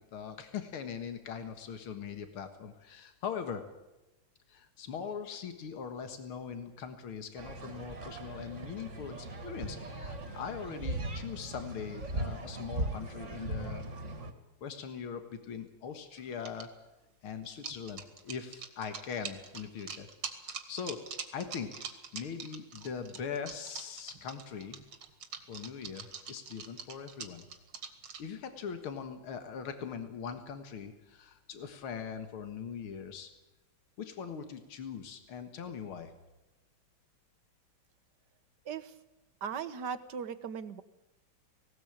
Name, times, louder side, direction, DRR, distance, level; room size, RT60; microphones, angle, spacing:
voice 1, 0.1-3.6 4.5-13.8 14.6-16.7 17.2-20.1 20.4-21.0 21.3-21.8 22.1-24.8 25.5-27.4 28.2-33.3 34.0-36.1, left 7 dB, 85° left, 8 dB, 2.4 m, -41 dB
sound 1, 7.4-14.3, right 1 dB, 35° right, 2.2 m, -39 dB
sound 2, 16.2-16.7 17.4-28.2, right 6 dB, 80° right, 2.8 m, -43 dB
voice 2, 39.4-40.8, right 7 dB, 60° right, 12 dB, 1.6 m, -38 dB
18.5 x 18.0 x 8.7 m, 1.0 s
omnidirectional pair, 2.3 m